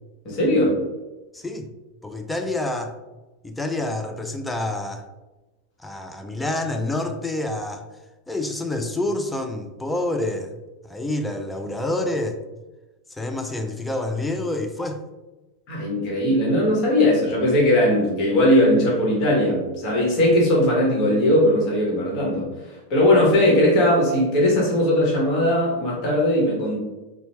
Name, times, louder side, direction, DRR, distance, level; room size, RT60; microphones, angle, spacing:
voice 1, 0.2-0.8 15.7-22.5 22.9-26.8, left 1 dB, 40° left, -3 dB, 1.3 m, -19 dB
voice 2, 1.3-1.7 2.0-3.0 3.4-5.0 5.8-7.9 8.3-10.5 10.8-12.4 13.1-15.0, left 2 dB, 5° left, 6 dB, 0.4 m, -27 dB
4.0 x 2.2 x 3.0 m, 1.1 s
figure-of-eight pair, 90°, 0 cm